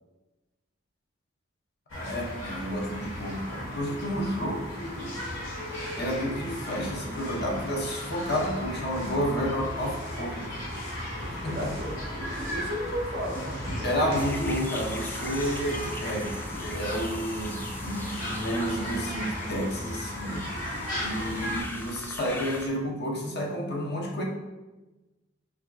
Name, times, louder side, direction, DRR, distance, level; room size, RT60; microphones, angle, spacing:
sound 1, 1.9-21.6, left 1 dB, 85° left, 1.4 m, -35 dB
voice 1, 1.9-5.1 5.9-10.7 11.3-11.7 13.8-20.5 21.0-24.2, equal, 55° left, 0 dB, 0.8 m, -31 dB
voice 2, 11.5-14.4, equal, 55° right, 1 dB, 0.7 m, -35 dB
sound 2, 14.2-22.7, left 1 dB, 10° left, 0.3 m, -41 dB
5.8 x 2.8 x 2.3 m, 1.1 s
head